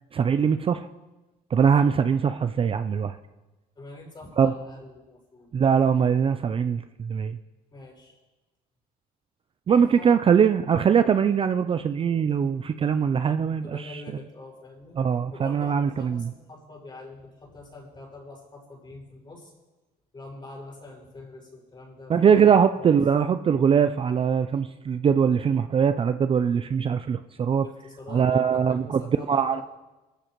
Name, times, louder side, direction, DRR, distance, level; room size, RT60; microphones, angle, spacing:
voice 1, 0.1-0.9 1.5-3.2 4.4-4.5 5.5-7.4 9.7-14.0 15.0-16.3 22.1-27.7 28.1-29.0 29.3-29.6, right 7 dB, 35° right, 10 dB, 0.4 m, -22 dB
voice 2, 3.7-5.5 7.7-8.2 9.7-10.2 13.6-15.0 15.3-19.5 20.1-22.5 22.7-23.0 27.6-29.6, left 2 dB, 25° left, -3 dB, 5.8 m, -44 dB
19.0 x 13.5 x 3.1 m, 1.1 s
cardioid pair, 110°, 17 cm